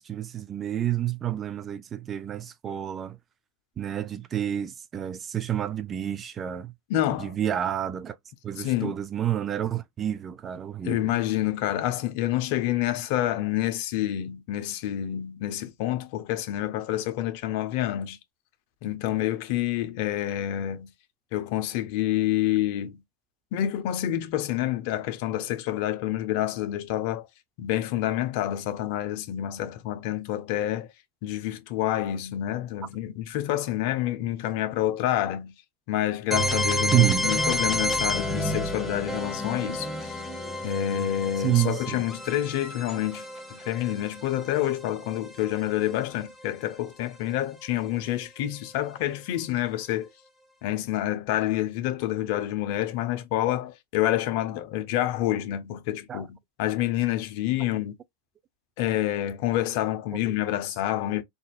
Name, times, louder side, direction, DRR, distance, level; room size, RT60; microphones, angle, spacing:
voice 1, 0.0-3.2 3.8-6.7 7.2-8.2 8.4-11.1 36.9-37.3 41.4-42.0 56.1-56.2 60.2-60.3 61.2-61.3, right 11 dB, 25° right, 0.4 m, -28 dB
voice 2, 6.9-7.3 8.6-8.9 10.8-18.2 18.8-20.9 21.3-23.0 23.5-27.3 27.6-30.9 31.2-35.5 35.9-40.2 40.6-50.1 50.6-57.9 58.8-61.2, left 13 dB, 55° left, 0.7 m, -28 dB
sound 1, 36.3-46.0, equal, ahead, 1.1 m, -30 dB
3.9 x 2.6 x 2.3 m
supercardioid pair, 130°, 0 cm